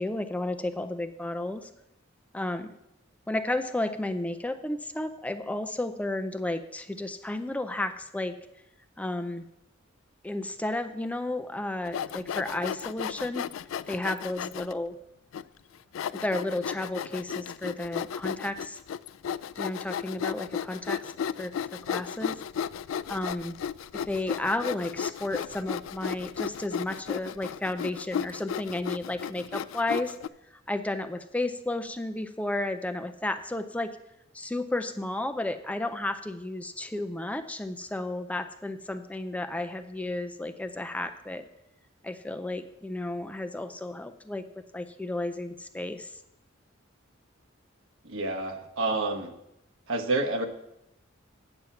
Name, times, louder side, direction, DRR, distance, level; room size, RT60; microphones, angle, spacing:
voice 1, 0.0-1.7 2.3-2.7 3.3-8.3 9.0-9.5 10.2-13.5 13.9-15.0 16.1-18.8 19.6-21.1 21.4-21.5 21.9-22.4 23.1-23.6 23.9-30.2 30.7-34.0 34.3-41.4 42.0-44.4 44.7-46.2, left 2 dB, 5° left, 8 dB, 0.4 m, -32 dB
Sawing, 11.9-14.7 15.3-15.4 15.9-30.3, left 8 dB, 80° left, 0.3 m, -34 dB
voice 2, 48.0-49.3 49.9-50.5, right 2 dB, 80° right, 3 dB, 1.2 m, -28 dB
8.9 x 7.1 x 5.8 m, 0.84 s
head